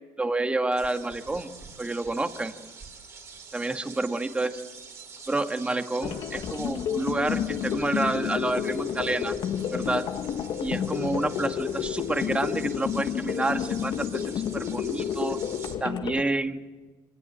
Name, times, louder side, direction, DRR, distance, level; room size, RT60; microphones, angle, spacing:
voice 1, 0.2-1.5 1.8-2.5 3.5-4.6 5.3-9.3 9.7-10.1 10.6-15.4 15.8-16.6, right 2 dB, 15° right, 7 dB, 1.6 m, -29 dB
sound 1, 0.7-15.7, right 5 dB, 35° right, 4.5 m, -46 dB
sound 2, 6.0-16.2, left 9 dB, 55° left, 1.5 m, -30 dB
26.0 x 20.0 x 8.7 m, 1.3 s
cardioid pair, 120°, 9 cm